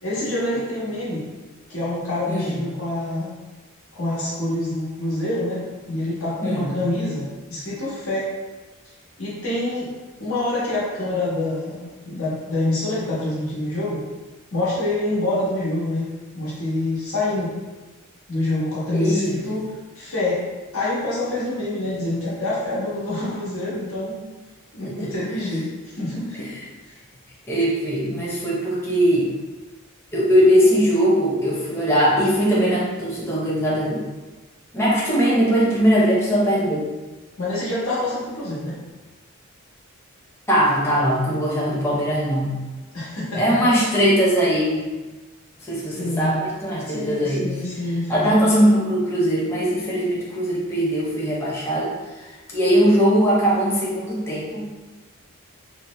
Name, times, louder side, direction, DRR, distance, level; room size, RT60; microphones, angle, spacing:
voice 1, 0.0-1.3 1.7-3.3 3.9-8.3 9.2-9.9 10.2-14.1 14.5-16.1 16.3-17.5 18.3-19.6 19.9-20.5 20.7-24.2 24.7-25.7 25.9-26.5 26.8-26.9 37.4-38.8 42.9-43.5 45.9-46.4 46.9-48.4, left 2 dB, 85° left, -7 dB, 1.1 m, -26 dB
voice 2, 2.3-2.6 6.4-6.7 18.9-19.3 24.8-25.1 26.4-26.5 27.5-29.3 30.1-34.0 34.7-36.8 40.5-42.6 43.4-45.0 45.7-47.6 48.1-51.9 52.2-54.7, equal, 10° left, -7 dB, 0.6 m, -20 dB
2.9 x 2.0 x 3.1 m, 1.2 s
head